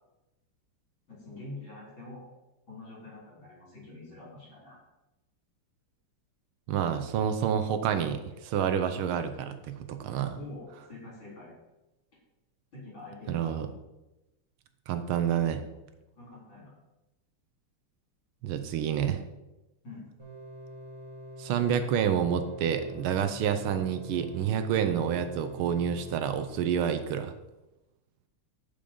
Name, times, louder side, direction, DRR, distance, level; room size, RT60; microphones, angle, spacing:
voice 1, 1.1-2.3 2.7-4.8 10.4-11.5 12.7-13.5 16.1-16.7 19.8-20.0, left 2 dB, 60° left, -4 dB, 4.8 m, -45 dB
voice 2, 6.7-10.4 13.3-13.7 14.9-15.6 18.4-19.2 21.4-27.3, right 8 dB, 75° right, 9 dB, 1.6 m, -28 dB
sound 1, 20.2-26.5, equal, 15° right, 3.9 m, -45 dB
8.7 x 7.1 x 5.3 m, 0.99 s
omnidirectional pair, 2.4 m